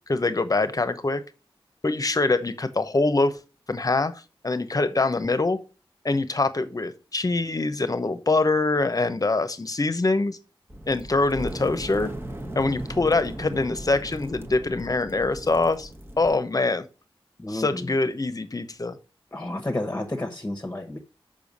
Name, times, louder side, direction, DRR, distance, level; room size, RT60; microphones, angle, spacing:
voice 1, 0.1-1.2 1.8-3.3 3.7-4.1 4.4-5.6 6.0-10.4 10.9-12.1 12.6-15.9 16.2-16.8 17.5-19.0, left 3 dB, 40° left, 0.9 m, -24 dB
sound 1, 10.7-16.4, right 1 dB, 25° right, 1.2 m, -37 dB
voice 2, 17.4-17.9 19.3-21.0, left 1 dB, 20° left, 1.2 m, -31 dB
7.0 x 5.5 x 5.3 m
wide cardioid pair, 95°, 10 cm